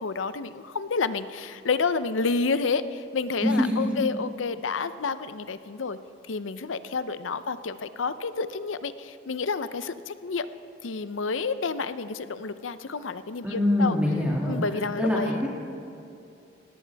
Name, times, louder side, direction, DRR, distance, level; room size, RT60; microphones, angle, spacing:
voice 1, 0.0-6.0 6.3-10.5 10.8-14.0 14.4-15.5, left 4 dB, 90° left, 13 dB, 0.6 m, -29 dB
voice 2, 3.4-4.0 13.4-14.5 15.0-15.2, left 1 dB, 5° right, -4 dB, 2.3 m, -24 dB
19.0 x 17.0 x 3.5 m, 2.6 s
head